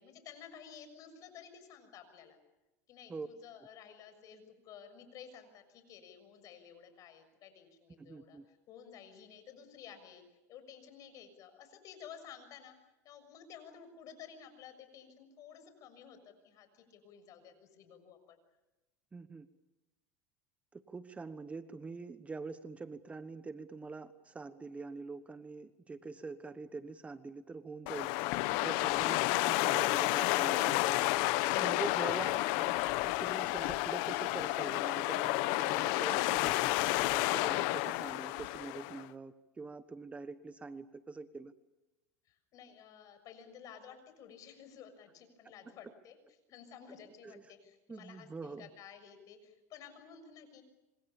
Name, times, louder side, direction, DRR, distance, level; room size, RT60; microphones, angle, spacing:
voice 1, 0.0-2.4 2.9-10.2 10.5-12.7 13.0-18.4 42.2-46.2 46.5-50.6, left 8 dB, 50° left, 9 dB, 6.7 m, -53 dB
voice 2, 8.0-8.4 19.1-19.5 20.7-28.1 28.6-31.1 31.5-36.7 37.1-41.5 47.2-47.5 47.9-48.7, right 4 dB, 15° right, 12 dB, 1.2 m, -44 dB
sound 1, 27.9-39.0, left 19 dB, 65° left, 1.1 m, -31 dB
26.5 x 26.5 x 7.2 m, 1.0 s
supercardioid pair, 115°, 8 cm